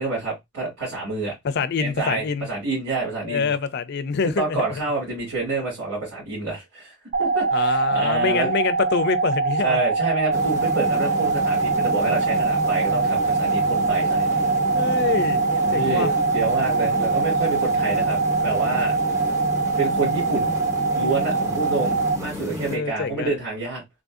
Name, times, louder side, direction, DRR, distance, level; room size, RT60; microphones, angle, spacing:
voice 1, 0.0-1.3 1.8-3.5 4.4-8.6 9.6-14.6 15.5-19.1 19.8-20.6 20.9-23.8, right 3 dB, 85° right, 2.3 m, -28 dB
voice 2, 1.4-2.5 3.2-4.7 7.5-9.8 14.7-15.4 15.7-16.1 22.7-23.3, left 5 dB, 50° left, 0.4 m, -25 dB
sound 1, 7.1-22.2, right 4 dB, 45° right, 0.3 m, -23 dB
sound 2, 10.3-22.8, left 1 dB, 10° right, 0.7 m, -32 dB
3.6 x 2.6 x 2.4 m
head